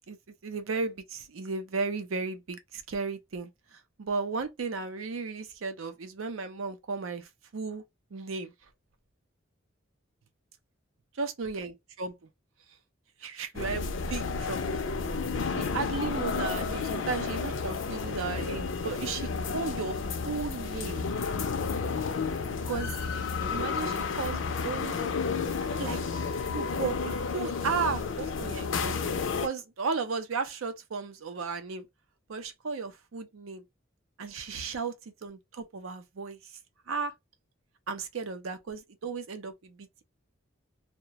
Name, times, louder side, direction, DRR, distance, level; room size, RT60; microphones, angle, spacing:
voice 1, 0.4-7.8 8.1-8.5 11.1-12.2 13.2-14.6 15.5-20.0 20.3-21.1 22.6-22.9 23.5-25.1 25.4-25.5 25.8-26.2 26.5-29.1 29.4-31.9 32.3-33.6 34.2-35.0 35.2-36.4 36.9-37.1 37.9-40.0, right 4 dB, 90° right, 0.5 m, -35 dB
sound 1, 13.5-29.5, left 5 dB, 70° left, 0.4 m, -31 dB
2.3 x 2.1 x 2.8 m
head